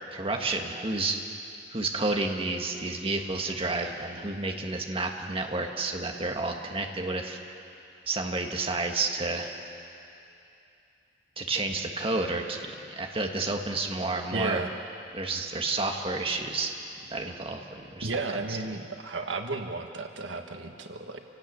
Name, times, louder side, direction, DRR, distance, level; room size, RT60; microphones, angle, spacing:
voice 1, 0.1-1.2 1.7-7.4 8.1-9.5 11.4-14.6 15.1-16.7 17.1-18.1, right 3 dB, 30° right, 2 dB, 1.7 m, -30 dB
voice 2, 14.3-14.7 18.0-21.2, right 3 dB, 90° right, 5 dB, 1.6 m, -33 dB
28.5 x 17.5 x 8.5 m, 2.7 s
head